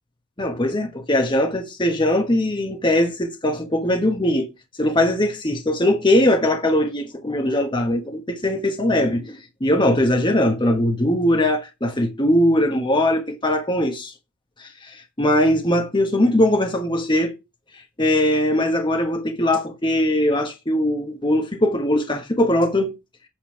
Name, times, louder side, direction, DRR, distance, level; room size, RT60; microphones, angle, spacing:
voice 1, 0.4-4.5 4.8-14.1 14.6-17.3 18.0-22.9, left 1 dB, 20° left, 1.4 m, -20 dB
8.9 x 5.6 x 5.7 m
head